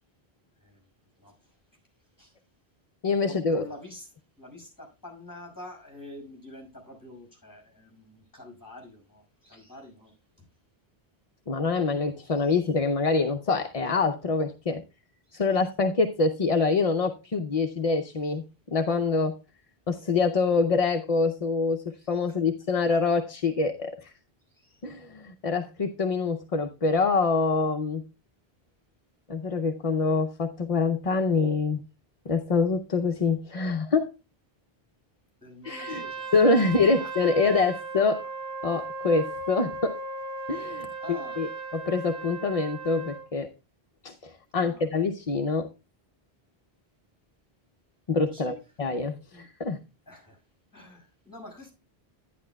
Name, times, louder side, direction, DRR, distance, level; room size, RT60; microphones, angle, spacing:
voice 1, 1.2-1.6 2.2-2.4 3.2-10.5 12.2-12.6 15.2-15.5 21.9-22.4 24.5-24.8 35.4-36.4 37.0-37.3 41.0-41.4 44.5-44.9 48.3-48.5 49.3-49.5 50.1-50.4 50.7-51.7, left 1 dB, 20° left, 5.6 m, -47 dB
voice 2, 3.0-3.6 11.5-14.8 15.3-19.3 19.9-24.1 24.8-28.0 29.3-31.8 32.3-34.1 35.6-36.0 36.3-38.2 38.6-40.0 40.5-43.5 44.0-45.7 48.1-49.8, left 4 dB, 40° left, 0.7 m, -25 dB
Trumpet, 35.6-43.3, right 3 dB, 65° right, 2.3 m, -37 dB
11.0 x 11.0 x 2.3 m
omnidirectional pair, 1.0 m